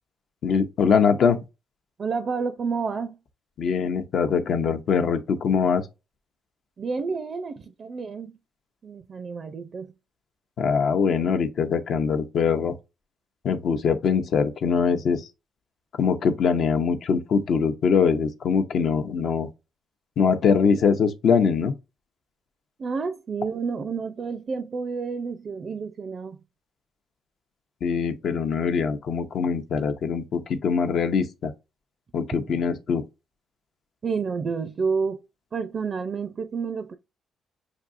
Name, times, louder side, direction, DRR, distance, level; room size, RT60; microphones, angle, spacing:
voice 1, 0.4-1.4 3.6-5.8 10.6-12.8 13.4-15.3 16.0-19.5 20.2-21.7 27.8-31.5 32.1-33.1, left 6 dB, 65° left, 0.7 m, -22 dB
voice 2, 2.0-3.2 6.8-8.4 8.8-9.9 22.8-26.4 34.0-35.2 35.5-37.0, right 5 dB, 45° right, 0.4 m, -29 dB
5.9 x 2.7 x 2.5 m
cardioid pair, 90°, 0 cm